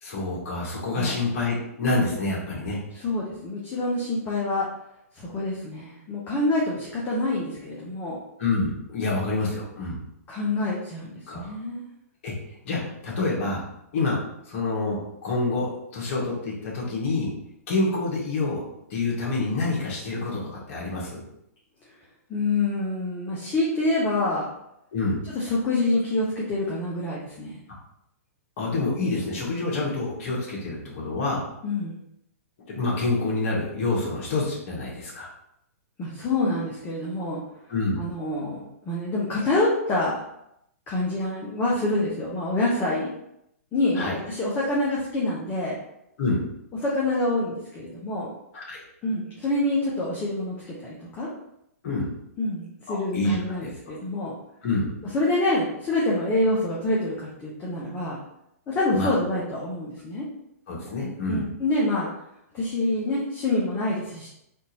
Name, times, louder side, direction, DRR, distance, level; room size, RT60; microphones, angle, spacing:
voice 1, 0.0-2.8 8.4-10.0 11.3-11.5 12.2-12.3 12.6-13.6 13.9-14.2 14.5-17.3 17.7-18.6 18.9-21.2 24.9-25.2 28.6-31.5 32.7-35.3 37.7-38.0 43.9-44.2 46.2-46.4 48.5-48.8 51.8-52.1 52.9-53.9 54.6-54.9 58.9-59.1 60.7-61.5, left 3 dB, 50° left, -4 dB, 1.3 m, -27 dB
voice 2, 2.9-4.7 5.2-8.2 10.3-11.8 22.3-24.4 25.3-27.5 31.6-32.0 36.0-37.4 38.0-40.2 40.9-43.1 43.7-45.8 46.8-48.3 49.0-51.3 52.4-54.3 55.1-58.2 58.7-60.3 61.3-62.1 62.5-64.3, left 2 dB, 20° left, -5 dB, 0.7 m, -26 dB
3.5 x 2.5 x 2.9 m, 0.79 s
hypercardioid pair, 130°, 9 cm